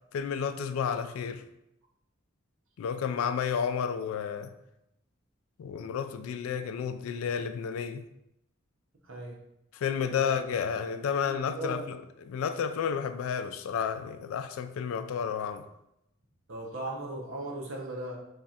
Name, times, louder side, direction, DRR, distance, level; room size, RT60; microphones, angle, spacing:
voice 1, 0.1-1.4 2.8-4.5 5.6-8.1 9.7-12.0 12.2-15.7, left 7 dB, 85° left, 0.3 m, -31 dB
voice 2, 9.0-9.4 10.1-10.3 11.2-11.8 16.5-18.2, right 1 dB, 70° right, 0.9 m, -37 dB
3.2 x 2.4 x 4.1 m
head